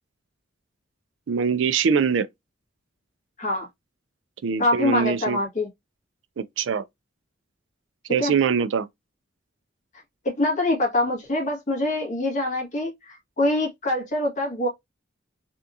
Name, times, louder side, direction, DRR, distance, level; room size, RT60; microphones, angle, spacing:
voice 1, 1.3-2.3 4.4-5.4 6.4-6.8 8.1-8.9, right 6 dB, 70° right, 0.4 m, -23 dB
voice 2, 4.6-5.7 8.2-8.3 10.4-14.7, left 1 dB, 40° left, 1.6 m, -24 dB
3.5 x 2.7 x 2.5 m
head